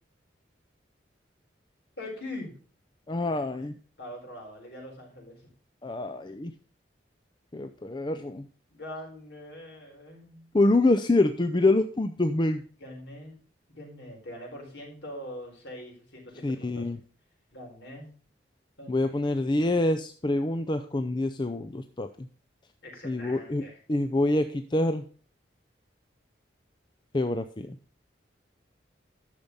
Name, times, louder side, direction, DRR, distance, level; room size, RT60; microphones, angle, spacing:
voice 1, 2.0-2.5 3.3-3.4 4.0-5.4 8.7-10.4 12.8-13.4 13.7-16.9 17.5-18.1 18.8-19.2 22.8-23.8, left 1 dB, 70° left, -1 dB, 4.4 m, -42 dB
voice 2, 3.1-3.7 5.8-6.5 7.5-8.5 10.5-12.6 16.4-17.0 18.9-22.3 23.0-23.6 23.9-25.0 27.1-27.8, left 2 dB, 25° left, 8 dB, 0.5 m, -26 dB
10.5 x 6.7 x 5.4 m, 0.41 s
head